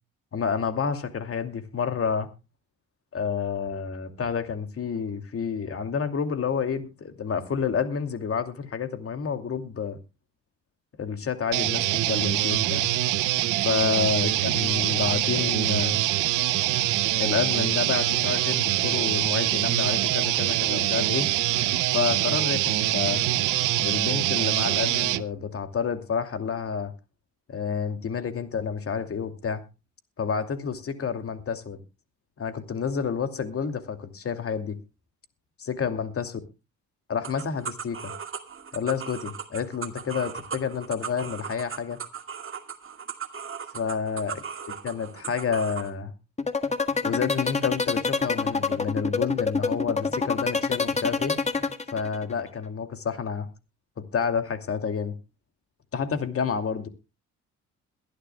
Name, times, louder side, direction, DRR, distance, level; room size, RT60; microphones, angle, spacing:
voice 1, 0.3-2.3 3.1-10.0 11.0-12.8 13.6-15.9 17.1-21.3 21.9-23.2 23.8-26.9 27.5-29.6 30.2-31.8 32.4-34.8 35.7-36.4 37.1-38.1 38.7-42.0 43.7-44.4 44.8-46.1 47.0-51.4 51.9-53.5 54.1-55.1 55.9-56.9, left 6 dB, 50° left, 2.6 m, -29 dB
sound 1, 11.5-25.2, right 15 dB, 90° right, 0.8 m, -24 dB
sound 2, 37.2-45.9, right 7 dB, 45° right, 2.3 m, -37 dB
sound 3, 46.4-52.3, left 4 dB, 20° left, 1.6 m, -25 dB
22.5 x 11.5 x 2.3 m
cardioid pair, 90°, 30 cm